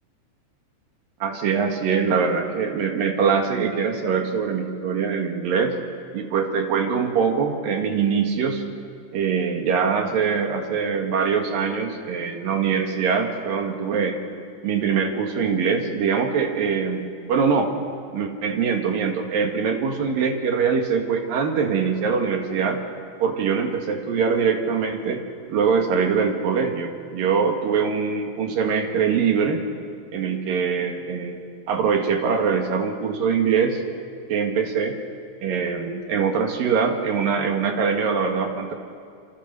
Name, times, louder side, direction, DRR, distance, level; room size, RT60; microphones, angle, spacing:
voice 1, 1.2-5.8 6.1-8.6 9.1-14.2 14.6-17.7 18.1-22.8 23.2-25.2 25.5-29.6 30.1-33.8 34.3-35.0 35.4-38.7, right 6 dB, 55° right, 4 dB, 3.0 m, -23 dB
27.0 x 26.0 x 6.8 m, 2.2 s
omnidirectional pair, 5.6 m